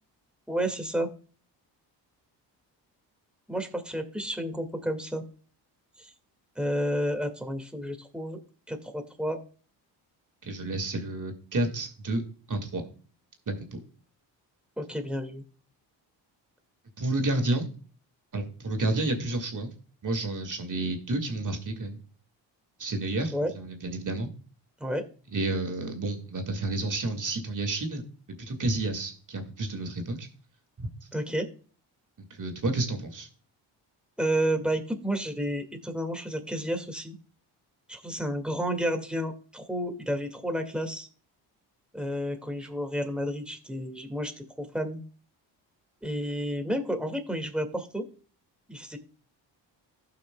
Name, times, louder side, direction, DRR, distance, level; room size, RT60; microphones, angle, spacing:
voice 1, 0.5-1.1 3.5-5.2 6.0-6.1 6.6-8.4 8.7-9.4 14.8-15.4 23.3-23.5 24.8-25.0 31.1-31.5 34.2-37.2 37.9-41.1 41.9-45.0 46.0-48.1 48.7-49.0, equal, ahead, 5 dB, 2.0 m, -31 dB
voice 2, 10.4-12.2 12.5-12.8 13.5-13.8 17.0-17.7 18.3-19.7 20.0-22.0 22.8-24.3 25.3-28.0 28.5-30.3 30.8-30.9 32.3-33.3, right 2 dB, 40° right, 5 dB, 2.2 m, -30 dB
15.5 x 5.8 x 2.3 m, 0.40 s
supercardioid pair, 60°, 47 cm